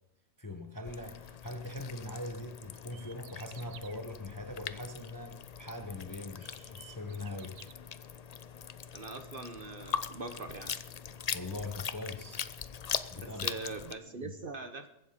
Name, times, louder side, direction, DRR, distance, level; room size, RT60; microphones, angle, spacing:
voice 1, 0.4-7.6 11.3-12.4 13.1-13.5 14.1-14.3, left 2 dB, 15° left, 0.8 m, -42 dB
sound 1, 0.8-13.9, left 7 dB, 70° left, 0.3 m, -41 dB
sound 2, 2.7-4.0 5.7-5.8 6.3-7.7, right 10 dB, 65° right, 1.0 m, -55 dB
voice 2, 8.9-10.7 13.1-14.9, right 3 dB, 45° right, 1.1 m, -42 dB
22.0 x 7.9 x 5.7 m
omnidirectional pair, 1.5 m